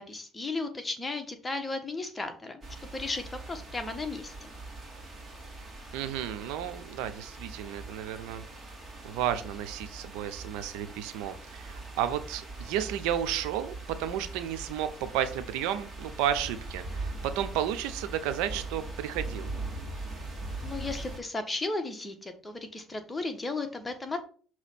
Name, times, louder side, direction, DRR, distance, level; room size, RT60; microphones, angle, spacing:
voice 1, 0.0-2.6 2.9-4.5 20.6-24.2, left 3 dB, 20° left, 6 dB, 1.3 m, -35 dB
sound 1, 2.6-21.2, right 2 dB, 25° right, 2.1 m, -41 dB
voice 2, 5.9-8.4 9.0-19.5, right 10 dB, 85° right, 11 dB, 0.7 m, -32 dB
6.1 x 3.1 x 5.8 m, 0.41 s
supercardioid pair, 95°, 0 cm